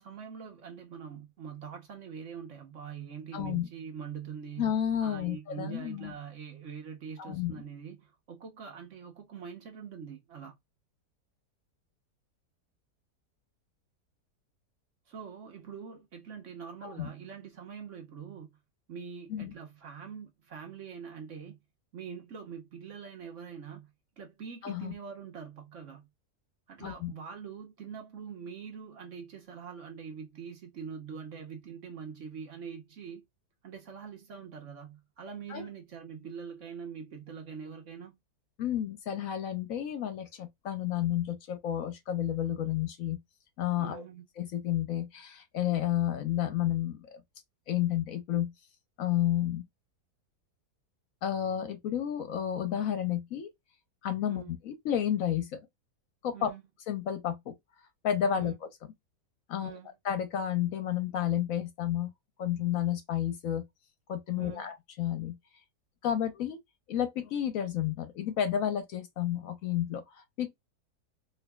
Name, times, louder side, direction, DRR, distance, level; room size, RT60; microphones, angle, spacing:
voice 1, 0.0-4.7 5.0-10.5 15.1-18.6 18.9-21.6 21.9-23.9 24.2-26.1 26.7-33.2 33.6-38.2 43.8-44.2 54.3-54.5 56.3-56.7 58.3-58.6 59.6-60.0 64.4-64.7, right 7 dB, 55° right, 1.1 m, -44 dB
voice 2, 3.3-3.7 4.6-6.1 7.2-7.5 16.8-17.1 19.3-19.5 24.6-24.9 26.8-27.1 35.5-35.7 38.6-43.2 43.6-44.0 44.4-47.2 47.7-48.5 49.0-49.7 51.2-53.5 54.0-55.7 56.2-56.5 56.9-57.5 58.0-58.5 59.5-59.8 60.0-62.1 62.4-63.6 64.1-65.3 66.0-66.6 66.9-70.5, left 10 dB, 70° left, 0.9 m, -31 dB
4.4 x 2.5 x 2.2 m
omnidirectional pair, 1.7 m